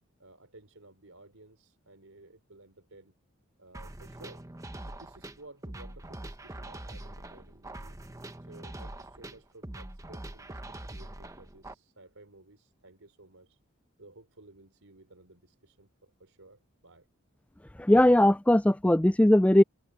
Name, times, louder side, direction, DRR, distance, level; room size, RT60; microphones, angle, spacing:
voice 1, 0.2-3.2 3.6-4.5 4.9-8.0 8.4-13.6 14.0-17.1, right 2 dB, 80° right, 4.1 m, -55 dB
sound 1, 3.7-11.7, right 1 dB, 15° right, 1.0 m, -43 dB
voice 2, 17.8-19.6, left 1 dB, 5° left, 0.4 m, -20 dB
head